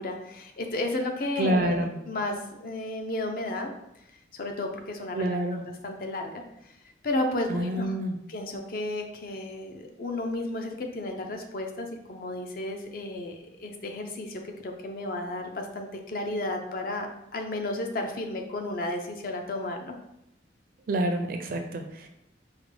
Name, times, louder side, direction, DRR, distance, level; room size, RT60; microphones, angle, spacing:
voice 1, 0.0-3.7 4.3-5.3 5.8-6.3 6.6-6.7 7.0-7.9 8.3-20.0, left 2 dB, 50° left, 3 dB, 0.5 m, -33 dB
voice 2, 1.4-2.0 5.1-5.6 7.5-8.2 20.9-22.1, right 1 dB, 50° right, 5 dB, 0.4 m, -28 dB
4.8 x 2.2 x 3.2 m, 0.83 s
head